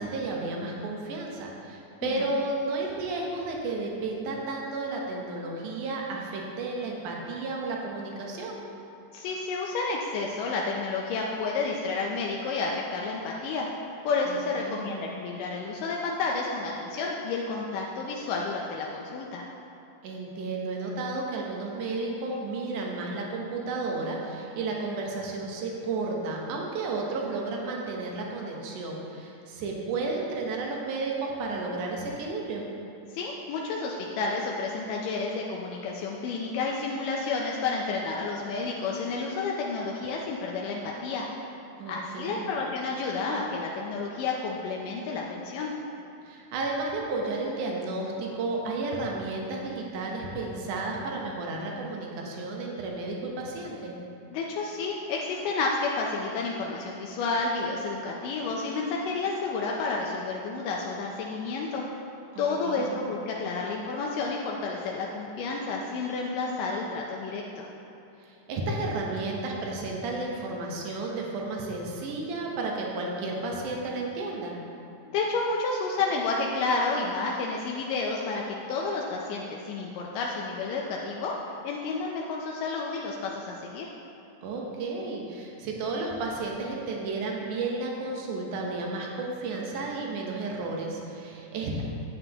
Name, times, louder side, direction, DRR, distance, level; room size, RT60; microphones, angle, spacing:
voice 1, 0.0-8.6 14.3-15.0 20.0-32.7 41.8-42.6 46.3-53.9 62.4-63.0 68.2-74.6 84.4-91.8, right 3 dB, 70° right, -1 dB, 2.4 m, -32 dB
voice 2, 9.1-13.7 14.0-19.4 33.1-41.3 41.9-45.7 54.3-61.8 62.4-67.7 75.0-81.4 81.6-83.9, left 3 dB, 80° left, -2 dB, 2.2 m, -30 dB
9.3 x 8.9 x 2.9 m, 2.9 s
omnidirectional pair, 3.8 m